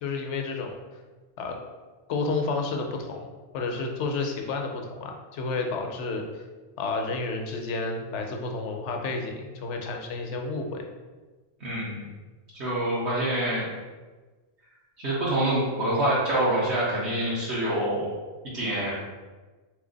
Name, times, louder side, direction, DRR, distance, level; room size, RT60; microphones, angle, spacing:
voice 1, 0.0-0.8 1.4-1.6 2.1-6.2 6.8-10.8, left 3 dB, 80° left, 2 dB, 0.9 m, -31 dB
voice 2, 11.6-12.0 12.6-13.6 15.0-18.1 18.5-18.9, right 1 dB, 70° right, -8 dB, 1.2 m, -26 dB
3.4 x 3.2 x 3.8 m, 1.3 s
omnidirectional pair, 1.2 m